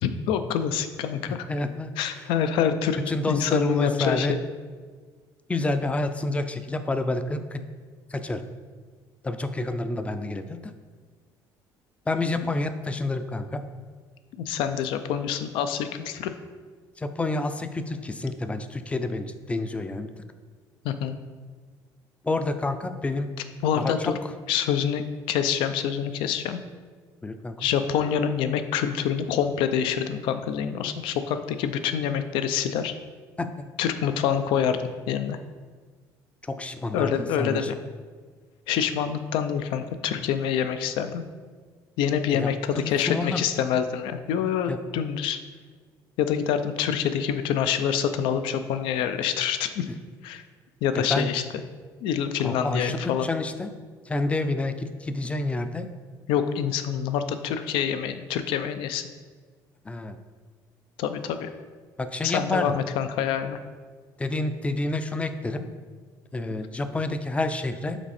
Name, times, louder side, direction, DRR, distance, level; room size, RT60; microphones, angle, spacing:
voice 1, 0.0-1.5 2.0-3.0 3.3-4.4 14.4-16.3 20.8-21.2 23.6-24.1 24.5-26.6 27.6-32.9 33.8-35.4 36.9-37.8 38.7-41.2 42.0-45.4 46.2-49.9 50.2-50.4 50.8-51.4 52.0-53.3 56.3-59.1 61.0-61.5 62.2-63.6, left 8 dB, 80° left, 10 dB, 0.4 m, -26 dB
voice 2, 1.3-2.2 3.1-4.3 5.5-7.6 8.1-8.4 9.2-10.7 12.1-13.6 17.0-20.1 22.2-23.3 23.8-24.1 27.2-27.7 33.4-33.6 36.4-37.7 42.3-42.5 42.8-43.4 44.7-44.8 51.0-51.3 52.4-53.7 54.1-55.9 59.9-60.2 62.0-62.8 64.2-65.7 66.3-68.0, left 2 dB, 15° left, 9 dB, 0.4 m, -29 dB
6.0 x 4.0 x 4.2 m, 1.5 s
cardioid pair, 105°, 8 cm